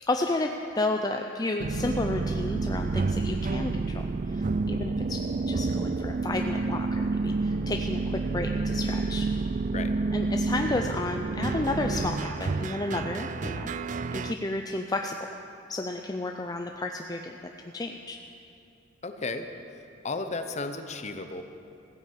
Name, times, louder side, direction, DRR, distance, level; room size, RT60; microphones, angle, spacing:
voice 1, 0.1-9.3 10.1-13.7 14.1-15.2 15.7-18.2, left 2 dB, 20° left, 4 dB, 0.5 m, -32 dB
sound 1, 1.6-14.3, right 3 dB, 40° right, 0.4 m, -29 dB
voice 2, 19.0-19.5 20.0-21.4, left 3 dB, 35° left, 8 dB, 0.8 m, -33 dB
15.0 x 10.0 x 7.5 m, 2.7 s
head